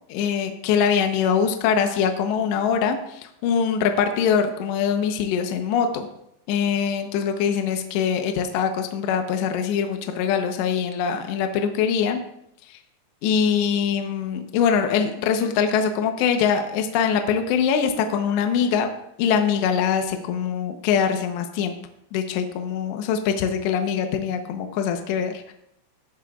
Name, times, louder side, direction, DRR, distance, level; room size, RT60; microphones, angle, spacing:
voice 1, 0.1-6.1 6.5-12.2 13.2-18.9 19.2-21.7 22.1-25.5, left 7 dB, 75° left, 5 dB, 2.9 m, -23 dB
17.5 x 10.0 x 2.3 m, 0.79 s
omnidirectional pair, 5.5 m